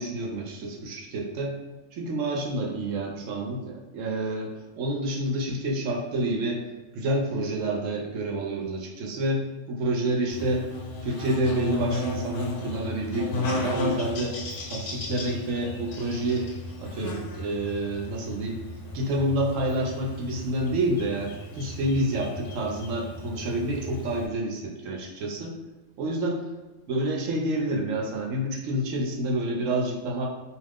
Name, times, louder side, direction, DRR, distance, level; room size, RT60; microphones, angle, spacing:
voice 1, 0.0-1.6 1.9-4.5 4.8-6.6 6.9-10.7 11.0-14.3 14.7-16.5 16.8-18.6 18.9-25.6 26.0-26.5 26.9-30.3, right 1 dB, 75° right, 0 dB, 1.0 m, -28 dB
Buzz, 10.3-24.3, left 2 dB, 70° left, 0.9 m, -34 dB
2.4 x 2.4 x 3.4 m, 1.2 s
omnidirectional pair, 1.3 m